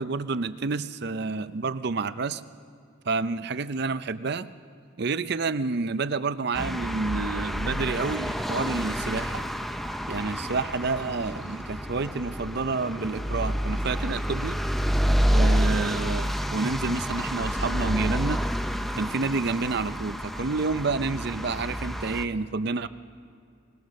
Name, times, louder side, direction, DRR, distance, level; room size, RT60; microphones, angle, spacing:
voice 1, 0.0-2.4 3.1-4.5 5.0-9.5 10.1-14.6 15.3-18.5 19.0-22.9, right 4 dB, 55° right, 13 dB, 0.6 m, -29 dB
sound 1, 6.5-22.3, equal, ahead, 0.6 m, -28 dB
20.5 x 20.5 x 6.5 m, 2.4 s
head